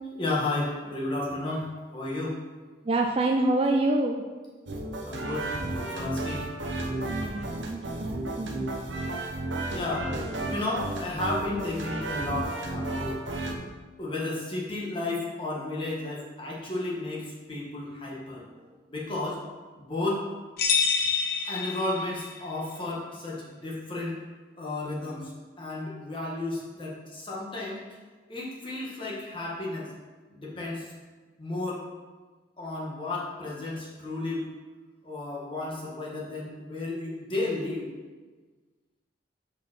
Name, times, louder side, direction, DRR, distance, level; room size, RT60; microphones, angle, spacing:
voice 1, 0.2-2.4 5.0-6.5 9.7-10.1 10.5-13.2 14.0-18.4 18.9-19.4 19.7-20.2 21.5-24.2 24.6-25.3 25.6-27.8 28.3-29.9 30.3-30.9 31.4-31.8 32.6-34.5 35.0-37.9, left 2 dB, 25° left, -4 dB, 1.4 m, -33 dB
voice 2, 2.8-4.2 7.1-8.7, right 2 dB, 30° right, 1 dB, 0.4 m, -27 dB
sound 1, 4.7-13.5, right 2 dB, 75° right, 0.9 m, -33 dB
sound 2, 20.6-22.4, left 6 dB, 50° left, 0.9 m, -27 dB
5.3 x 4.5 x 5.9 m, 1.4 s
head